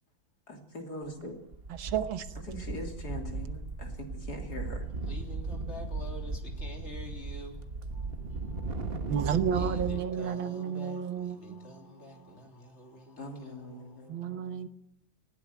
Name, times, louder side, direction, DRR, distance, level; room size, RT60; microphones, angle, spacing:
voice 1, 0.5-1.3 2.5-4.8 13.2-14.5, left 1 dB, 50° left, 3.6 m, -42 dB
sound 1, 1.0-1.2 1.5-10.0, right 3 dB, 35° right, 1.4 m, -37 dB
voice 2, 1.7-2.4 9.1-12.4 14.1-14.7, right 8 dB, 80° right, 1.9 m, -32 dB
voice 3, 4.9-14.4, left 1 dB, 35° left, 3.5 m, -48 dB
19.0 x 16.5 x 9.3 m
omnidirectional pair, 2.1 m